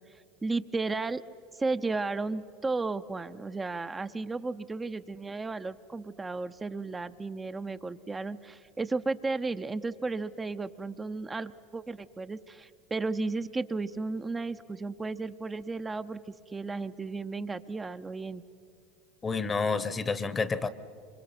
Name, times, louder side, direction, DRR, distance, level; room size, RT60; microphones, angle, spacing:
voice 1, 0.4-1.2 1.6-16.2 16.5-18.4, right 3 dB, 20° right, 10 dB, 0.7 m, -34 dB
voice 2, 19.2-20.7, left 4 dB, 25° left, 16 dB, 1.0 m, -29 dB
26.0 x 25.5 x 5.9 m, 2.4 s
hypercardioid pair, 90°, 0 cm